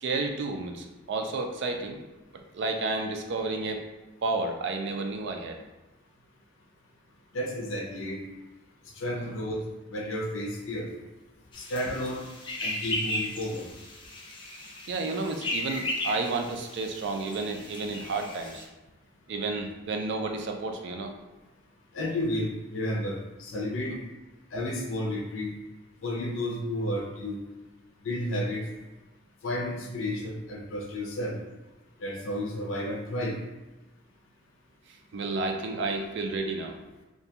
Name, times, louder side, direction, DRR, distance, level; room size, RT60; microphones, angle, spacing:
voice 1, 0.0-2.0 2.5-3.8 4.2-5.6 9.1-9.4 14.9-18.7 19.3-21.1 23.8-24.0 34.9-36.8, right 3 dB, 60° right, 3 dB, 0.4 m, -31 dB
voice 2, 7.3-8.2 9.0-9.6 9.9-10.9 11.5-12.2 12.6-13.7 21.9-23.9 24.5-25.5 26.0-27.4 28.1-28.6 29.4-31.4 32.0-33.4, left 1 dB, 90° left, 0 dB, 0.5 m, -32 dB
sound 1, 11.5-18.6, left 1 dB, 25° left, 0.4 m, -36 dB
2.4 x 2.2 x 2.7 m, 1.1 s
head